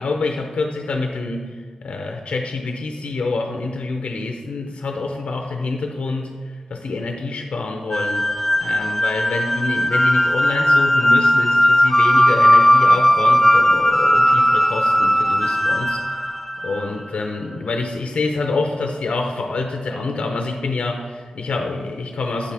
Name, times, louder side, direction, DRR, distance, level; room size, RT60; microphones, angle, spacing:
voice 1, 0.0-8.3 8.6-16.0 16.6-22.5, left 3 dB, 75° left, 3 dB, 0.7 m, -26 dB
sound 1, 7.9-17.1, equal, 5° left, 0.3 m, -17 dB
8.5 x 7.4 x 3.4 m, 1.5 s
wide cardioid pair, 125°, 2 cm